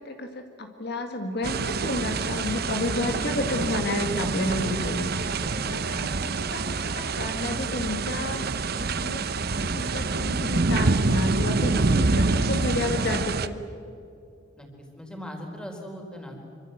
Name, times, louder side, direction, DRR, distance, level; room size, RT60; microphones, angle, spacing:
voice 1, 0.0-5.1 5.7-8.5 8.7-13.6, left 1 dB, 60° left, 5 dB, 2.2 m, -31 dB
sound 1, 1.4-13.5, right 3 dB, 55° right, 0.9 m, -26 dB
voice 2, 5.3-5.7 14.6-14.7 15.0-16.5, equal, 5° left, 1 dB, 4.4 m, -39 dB
26.5 x 25.0 x 8.0 m, 2.5 s
head